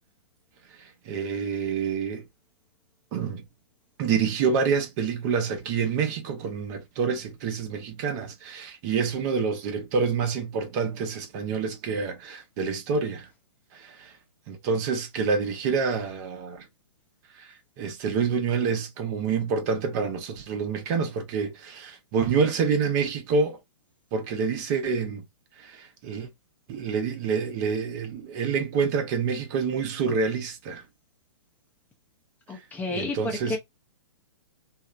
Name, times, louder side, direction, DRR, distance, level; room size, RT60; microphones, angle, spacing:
voice 1, 0.8-2.2 3.1-3.4 4.0-13.3 13.7-14.1 14.5-16.6 17.4-17.5 17.8-23.6 24.1-25.2 25.6-26.3 26.7-30.8 32.9-33.5, right 5 dB, 40° right, 0.7 m, -27 dB
voice 2, 32.5-33.6, left 2 dB, 10° left, 0.5 m, -31 dB
2.8 x 2.0 x 2.3 m
hypercardioid pair, 135°, 15 cm